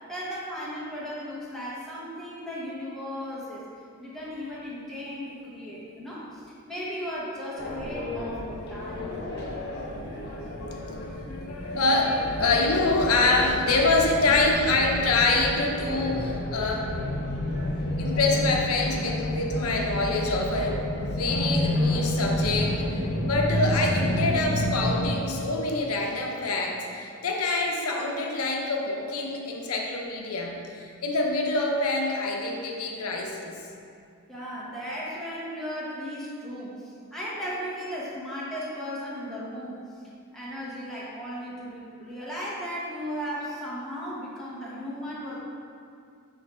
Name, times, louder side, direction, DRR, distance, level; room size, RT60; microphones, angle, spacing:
voice 1, 0.1-3.6 4.0-9.1 34.3-39.8 40.3-45.4, equal, ahead, -8 dB, 1.2 m, -36 dB
sound 1, 7.6-25.1, left 1 dB, 50° left, 0.8 m, -30 dB
voice 2, 9.7-16.9 18.0-33.6, left 2 dB, 80° left, 0 dB, 0.7 m, -26 dB
5.7 x 3.2 x 5.4 m, 2.4 s
head